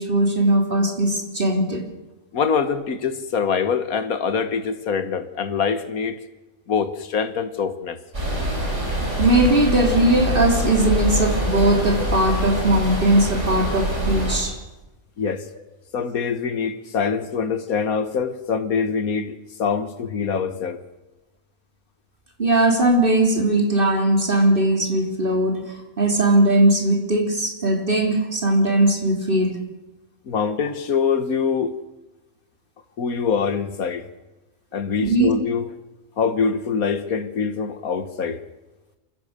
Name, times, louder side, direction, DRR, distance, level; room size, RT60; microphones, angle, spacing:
voice 1, 0.0-1.8 9.2-14.6 22.4-29.6 35.0-35.3, right 1 dB, 35° right, 2 dB, 3.6 m, -19 dB
voice 2, 2.3-6.2 6.7-8.0 15.2-15.5 15.9-20.8 30.3-31.8 33.0-34.0 34.7-35.7 36.2-38.4, left 6 dB, 80° left, 11 dB, 1.8 m, -24 dB
sound 1, 8.1-14.4, equal, 55° right, 6.0 m, -24 dB
27.0 x 16.0 x 6.7 m, 1.1 s
omnidirectional pair, 1.5 m